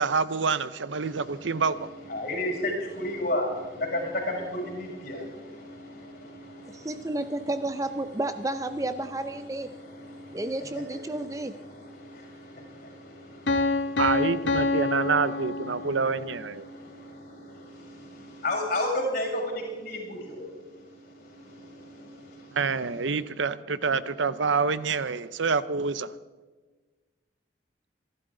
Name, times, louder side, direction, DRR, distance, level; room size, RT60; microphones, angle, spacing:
voice 1, 0.0-1.9 14.0-16.7 22.5-26.1, right 5 dB, 85° right, 0.7 m, -27 dB
voice 2, 1.1-1.6 2.1-7.5 9.7-15.4 15.8-22.7, left 1 dB, 50° left, 6.8 m, -35 dB
voice 3, 6.7-9.7 10.3-11.5, right 2 dB, 15° right, 0.5 m, -31 dB
Piano, 13.5-16.2, left 2 dB, 80° left, 1.1 m, -27 dB
27.0 x 12.0 x 3.9 m
head